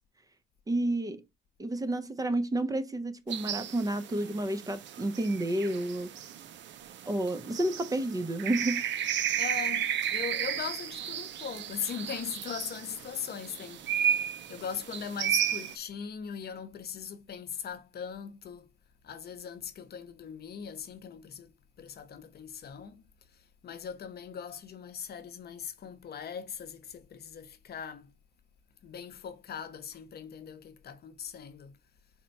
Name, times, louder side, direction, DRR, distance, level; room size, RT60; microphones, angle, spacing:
voice 1, 0.7-1.2 1.6-6.1 7.1-8.8, right 1 dB, 20° right, 0.6 m, -30 dB
sound 1, 3.3-15.7, right 9 dB, 65° right, 0.5 m, -34 dB
voice 2, 9.4-14.0 14.5-18.7 19.0-28.1 28.8-31.8, left 7 dB, 55° left, 0.7 m, -40 dB
4.3 x 2.2 x 4.0 m
cardioid pair, 90°, 20 cm